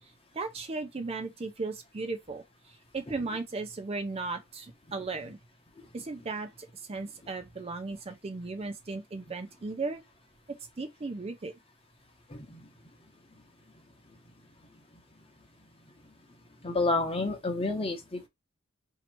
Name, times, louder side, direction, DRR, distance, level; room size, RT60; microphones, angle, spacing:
voice 1, 0.3-5.4 5.9-10.0 10.5-11.5, right 3 dB, 30° right, 0.4 m, -36 dB
voice 2, 12.3-12.6 16.6-18.3, left 2 dB, 25° left, 0.9 m, -29 dB
3.2 x 2.9 x 4.2 m
head